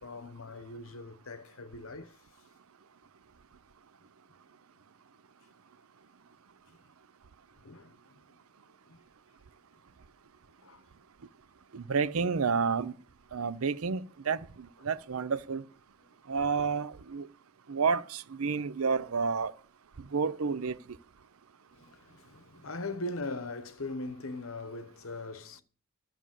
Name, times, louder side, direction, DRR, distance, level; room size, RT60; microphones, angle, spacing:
voice 1, 0.0-2.2 6.7-6.8 7.6-8.4 8.9-9.0 10.6-10.9 14.8-14.9 16.0-16.1 21.7-25.6, left 2 dB, 65° left, 1.0 m, -41 dB
voice 2, 11.7-12.9 13.3-15.6 16.3-17.3 17.7-19.5 20.0-20.8, right 5 dB, 70° right, 0.6 m, -30 dB
12.0 x 6.8 x 7.5 m
head